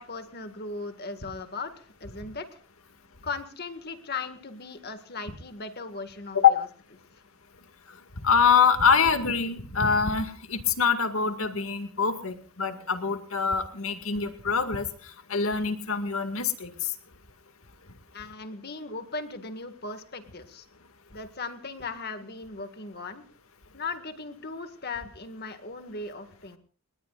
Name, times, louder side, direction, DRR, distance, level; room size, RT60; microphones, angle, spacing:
voice 1, 0.0-2.5 3.2-6.6 18.1-20.7 21.1-23.3 23.7-26.6, left 3 dB, 45° left, 8 dB, 1.9 m, -38 dB
voice 2, 8.2-14.8 15.3-16.7, left 6 dB, 75° left, 8 dB, 2.1 m, -24 dB
30.0 x 19.0 x 2.5 m, 0.41 s
head